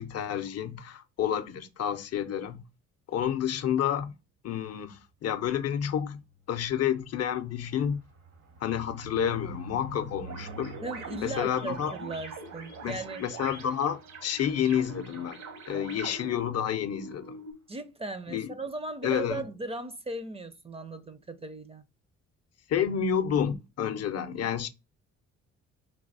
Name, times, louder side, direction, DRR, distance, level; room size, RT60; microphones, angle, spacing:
voice 1, 0.0-2.6 3.1-4.2 4.4-6.2 6.5-8.0 8.6-10.8 11.2-12.0 12.8-15.4 15.7-17.4 18.3-18.5 19.0-19.4 22.7-24.7, left 9 dB, 55° left, 0.6 m, -30 dB
sound 1, 6.1-14.9 15.4-15.5 15.8-15.9 16.2-16.4, right 2 dB, 90° right, 1.9 m, -49 dB
sound 2, 10.2-17.5, right 3 dB, 70° right, 1.2 m, -43 dB
voice 2, 10.8-13.2 17.7-21.8, right 2 dB, 20° right, 0.5 m, -37 dB
3.3 x 3.1 x 4.0 m
cardioid pair, 90°, 30 cm